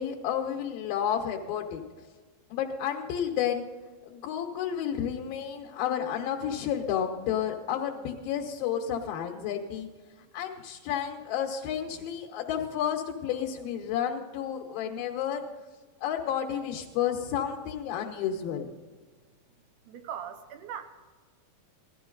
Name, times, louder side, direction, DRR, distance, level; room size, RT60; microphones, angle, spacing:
voice 1, 0.0-1.8 2.5-3.6 4.1-9.9 10.3-15.4 16.0-18.7, left 9 dB, 80° left, 0 dB, 3.0 m, -31 dB
voice 2, 19.9-20.8, right 9 dB, 70° right, 8 dB, 2.1 m, -39 dB
17.5 x 13.0 x 3.9 m, 1.4 s
omnidirectional pair, 4.2 m